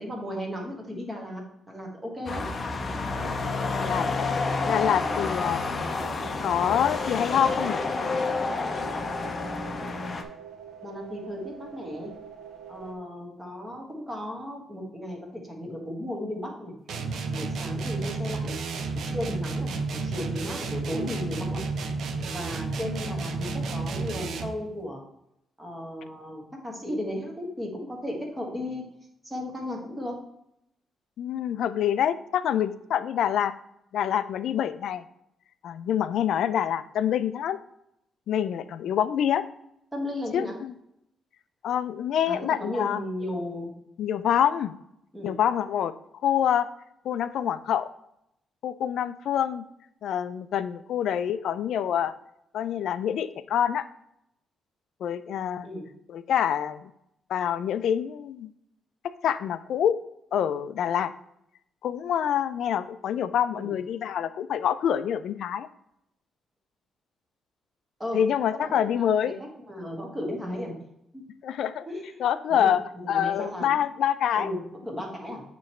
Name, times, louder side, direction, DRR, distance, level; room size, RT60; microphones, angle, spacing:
voice 1, 0.0-2.5 10.8-12.1 12.7-16.7 17.3-18.6 18.9-21.6 22.3-25.0 25.6-28.8 29.2-30.2 39.9-40.6 42.3-43.7 45.1-45.3 55.6-55.8 63.5-63.7 68.0-68.2 68.5-70.8 71.1-71.2 71.9-72.2 72.5-72.7 73.0-73.9 74.3-75.4, left 1 dB, 10° right, -1 dB, 1.4 m, -35 dB
sound 1, 2.3-10.2, left 3 dB, 30° left, 0.7 m, -29 dB
sound 2, 3.1-12.9, right 8 dB, 85° right, 1.0 m, -45 dB
voice 2, 3.7-5.6 6.4-7.8 31.2-33.5 33.9-35.0 35.6-37.6 38.3-39.4 40.3-40.7 41.6-43.0 44.0-44.7 45.2-45.9 46.2-46.7 47.0-47.9 48.6-49.6 50.0-52.1 52.5-53.9 55.0-55.7 56.1-56.9 57.3-58.5 59.2-59.9 60.3-61.1 61.8-65.7 68.1-69.4 71.4-71.9 72.2-72.8 73.1-74.5, left 9 dB, 70° left, 13 dB, 0.4 m, -26 dB
sound 3, 16.9-24.6, right 3 dB, 60° right, 0.6 m, -31 dB
8.8 x 3.1 x 4.3 m, 0.78 s
cardioid pair, 155°, 0 cm